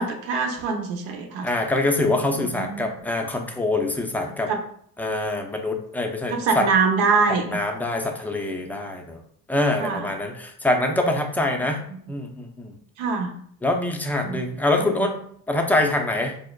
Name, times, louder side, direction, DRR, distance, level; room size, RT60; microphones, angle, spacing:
voice 1, 0.0-1.5 2.4-2.9 4.5-4.6 6.3-7.4 9.8-10.1 13.0-13.4 14.2-14.4 14.8-15.1, right 4 dB, 70° right, 4 dB, 0.8 m, -24 dB
voice 2, 1.4-4.5 5.0-6.7 7.5-9.2 9.5-11.8 12.1-12.8 13.6-15.2 15.5-16.4, left 2 dB, 5° left, 2 dB, 0.5 m, -24 dB
5.2 x 2.1 x 2.3 m, 0.62 s
hypercardioid pair, 65°, 48 cm